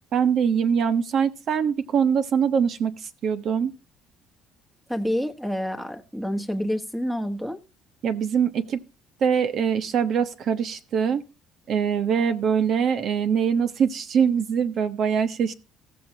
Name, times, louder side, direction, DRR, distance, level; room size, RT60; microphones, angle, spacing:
voice 1, 0.1-3.7 8.0-8.8 9.2-11.2 11.7-15.5, right 7 dB, 55° right, 1.1 m, -23 dB
voice 2, 4.9-7.6, equal, 5° right, 1.3 m, -28 dB
15.5 x 7.6 x 2.9 m
cardioid pair, 115°, 0 cm